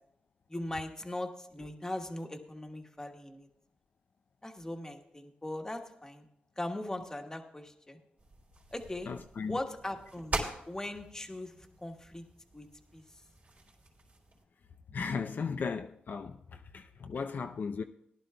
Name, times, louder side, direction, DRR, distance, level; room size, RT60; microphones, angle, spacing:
voice 1, 0.5-3.5 4.4-6.2 6.6-8.0 8.7-9.1 9.5-10.4 10.7-12.2 12.5-12.7 12.9-13.0, left 1 dB, 15° left, 1.3 m, -39 dB
sound 1, 8.2-14.4, right 2 dB, 50° right, 3.3 m, -43 dB
voice 2, 9.1-9.6 14.9-16.4 16.7-17.8, left 5 dB, 60° left, 0.5 m, -36 dB
18.0 x 11.0 x 2.3 m
cardioid pair, 65°, 4 cm